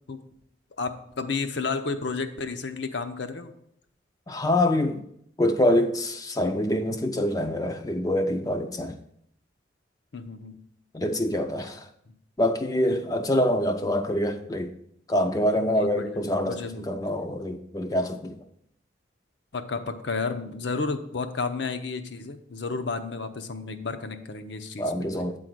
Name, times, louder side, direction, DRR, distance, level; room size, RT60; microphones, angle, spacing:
voice 1, 0.8-3.5 10.1-10.6 12.1-12.2 13.4-13.5 15.7-16.9 19.5-24.9, left 4 dB, 70° left, 0.7 m, -32 dB
voice 2, 4.3-5.0 5.4-8.9 10.9-11.9 12.4-14.7 15.1-18.4 24.8-25.4, left 1 dB, 20° left, 0.4 m, -25 dB
8.5 x 3.8 x 6.0 m
head